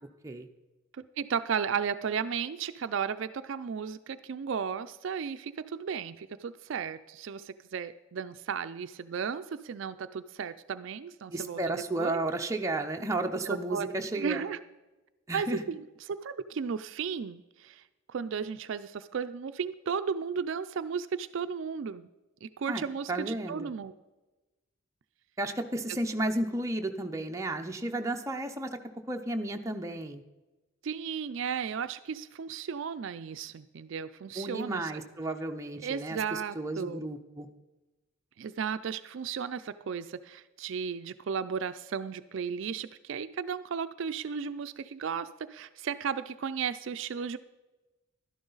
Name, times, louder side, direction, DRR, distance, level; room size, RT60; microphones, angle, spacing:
voice 1, 0.9-12.2 13.5-13.9 14.1-14.6 15.3-15.8 16.1-17.8 18.1-22.1 22.4-23.9 30.8-34.9 35.8-37.0 38.4-47.4, right 6 dB, 60° right, 12 dB, 0.4 m, -34 dB
voice 2, 11.3-14.5 15.3-15.6 22.7-22.8 23.1-23.7 25.4-28.8 29.1-30.2 34.4-37.5, right 2 dB, 15° right, 4 dB, 0.6 m, -33 dB
12.0 x 11.0 x 3.9 m, 1.1 s
head